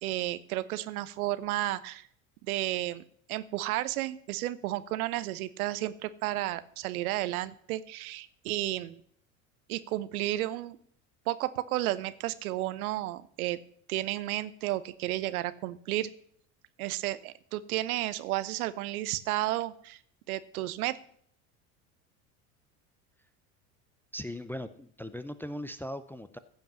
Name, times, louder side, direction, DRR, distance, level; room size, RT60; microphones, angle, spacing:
voice 1, 0.0-2.1 2.4-3.0 3.3-9.0 9.7-10.8 11.3-13.6 13.9-16.1 16.8-20.0 20.3-21.0, right 15 dB, 70° right, 15 dB, 0.9 m, -32 dB
voice 2, 24.1-26.4, left 1 dB, 5° left, 11 dB, 0.5 m, -39 dB
15.0 x 5.4 x 7.3 m, 0.63 s
hypercardioid pair, 75°, 45 cm